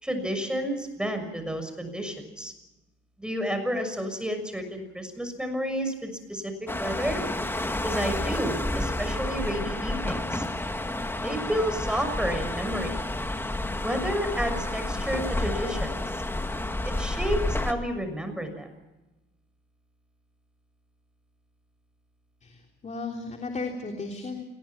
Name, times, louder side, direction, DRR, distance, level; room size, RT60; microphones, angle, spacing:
voice 1, 0.0-2.5 3.2-7.2 7.8-10.4 11.2-13.0 13.8-16.2 16.8-18.7, equal, 5° right, 7 dB, 6.5 m, -31 dB
sound 1, 6.7-17.7, left 1 dB, 10° left, 2.0 m, -30 dB
voice 2, 22.4-24.4, left 3 dB, 35° left, 2 dB, 3.5 m, -35 dB
26.5 x 21.0 x 6.0 m, 1.0 s
cardioid pair, 90°, 20 cm